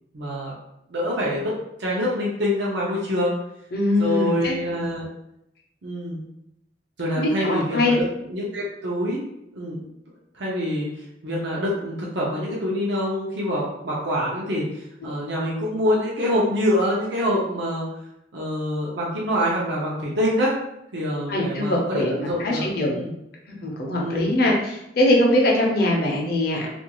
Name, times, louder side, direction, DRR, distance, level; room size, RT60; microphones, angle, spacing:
voice 1, 0.1-0.5 0.9-1.5 1.8-3.3 4.0-5.1 5.8-6.2 7.0-9.2 9.5-9.8 10.3-10.9 11.2-17.9 18.3-20.5 20.9-22.6 22.9-23.1 24.0-24.3, left 1 dB, 70° right, -5 dB, 0.6 m, -25 dB
voice 2, 3.7-4.9 7.2-8.0 21.3-23.0 23.6-26.7, left 1 dB, 55° left, -1 dB, 0.6 m, -22 dB
2.5 x 2.3 x 2.9 m, 0.82 s
head